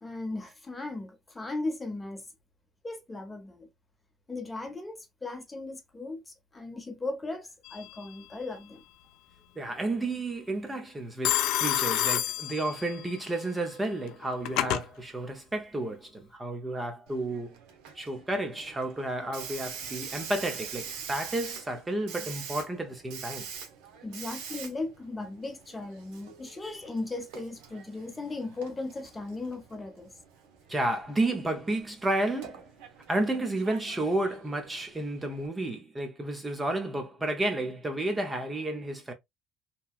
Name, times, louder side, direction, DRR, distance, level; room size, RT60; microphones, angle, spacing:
voice 1, 0.0-2.2 2.8-3.7 4.3-8.8 24.0-30.1, left 2 dB, 15° left, 0.8 m, -37 dB
Telephone, 7.6-8.2 11.2-13.1 14.1-14.9, left 13 dB, 75° left, 0.4 m, -29 dB
voice 2, 9.6-17.5 17.9-23.5 30.7-32.7 33.1-39.1, right 2 dB, 15° right, 0.6 m, -31 dB
Hiss, 17.1-35.5, right 7 dB, 80° right, 0.7 m, -45 dB
2.9 x 2.2 x 2.3 m
supercardioid pair, 95°, 0 cm